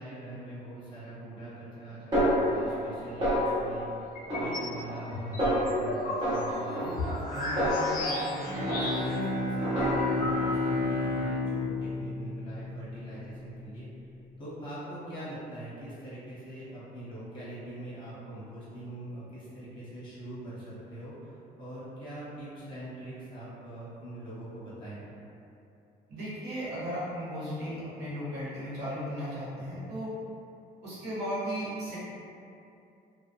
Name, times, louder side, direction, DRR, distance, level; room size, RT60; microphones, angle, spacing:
voice 1, 0.0-13.9 14.4-25.1, right 1 dB, 30° left, -9 dB, 1.0 m, -42 dB
Snare drum, 2.1-2.9 3.2-3.8 4.3-5.1 5.4-5.8 6.2-8.3 8.7-9.2 9.6-10.3, equal, 30° right, 1.3 m, -29 dB
sound 1, 4.2-4.7 5.1-9.3 9.6-9.7 9.8-10.8, left 1 dB, 55° left, 0.5 m, -35 dB
Bowed string instrument, 8.4-13.3, left 2 dB, 50° right, 0.5 m, -31 dB
voice 2, 26.1-30.1 30.8-32.0, equal, 80° right, -10 dB, 1.0 m, -35 dB
2.6 x 2.0 x 2.4 m, 2.6 s
cardioid pair, 110°, 17 cm